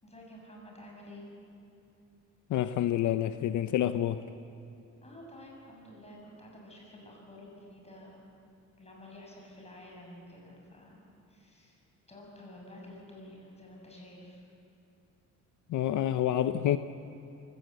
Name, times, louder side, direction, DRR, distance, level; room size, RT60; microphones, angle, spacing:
voice 1, 0.0-1.2 5.0-8.3 8.8-11.0 11.3-11.8 12.1-14.4, left 1 dB, 20° left, -1 dB, 6.9 m, -50 dB
voice 2, 2.5-4.3 15.7-16.8, left 11 dB, 75° left, 11 dB, 0.7 m, -28 dB
23.5 x 17.5 x 8.0 m, 2.7 s
cardioid pair, 115°, 30 cm